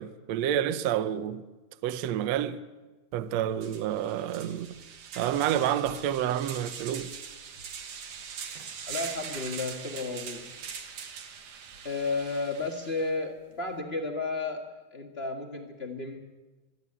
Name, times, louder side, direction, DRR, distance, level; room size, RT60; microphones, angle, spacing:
voice 1, 0.0-1.4 1.8-2.6 3.1-4.8 5.2-7.2, right 10 dB, 70° right, 1.6 m, -29 dB
sound 1, 3.1-3.2 3.6-13.1, right 6 dB, 55° right, 2.4 m, -42 dB
voice 2, 8.9-10.5 11.8-14.6 14.9-16.2, left 3 dB, 50° left, 0.7 m, -33 dB
23.0 x 13.0 x 9.8 m
omnidirectional pair, 4.0 m